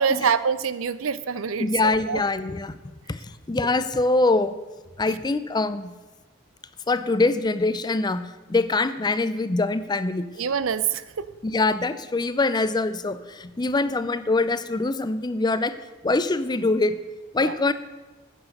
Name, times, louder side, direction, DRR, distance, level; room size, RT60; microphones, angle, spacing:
voice 1, 0.0-1.7 2.1-2.2 10.4-11.0 17.4-17.5, right 6 dB, 80° right, 15 dB, 0.6 m, -24 dB
voice 2, 1.6-4.6 5.0-5.9 6.9-10.3 11.4-15.7 16.0-17.0 17.3-17.7, left 3 dB, 20° left, 13 dB, 0.4 m, -24 dB
9.9 x 8.1 x 6.6 m, 1.2 s
head